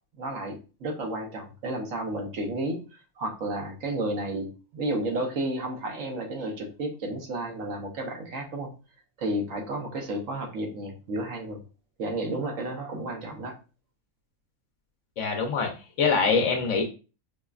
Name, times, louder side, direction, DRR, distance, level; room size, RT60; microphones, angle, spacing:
voice 1, 0.2-2.8 3.2-8.7 9.2-11.6 12.0-13.6, right 1 dB, 65° right, 1 dB, 1.1 m, -32 dB
voice 2, 15.2-15.7 16.0-16.8, left 5 dB, 65° left, 3 dB, 0.9 m, -23 dB
4.9 x 2.1 x 2.3 m, 0.32 s
omnidirectional pair, 1.5 m